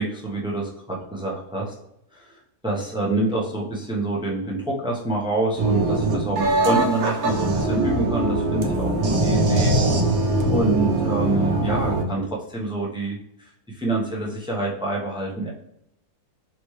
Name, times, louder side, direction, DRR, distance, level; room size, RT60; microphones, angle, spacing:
voice 1, 0.0-1.7 2.1-2.3 2.6-9.7 10.4-13.2 13.7-15.5, right 2 dB, 5° right, -2 dB, 0.6 m, -26 dB
sound 1, 5.6-12.0, right 2 dB, 75° right, 1.2 m, -22 dB
4.3 x 3.1 x 3.1 m, 0.79 s
omnidirectional pair, 1.6 m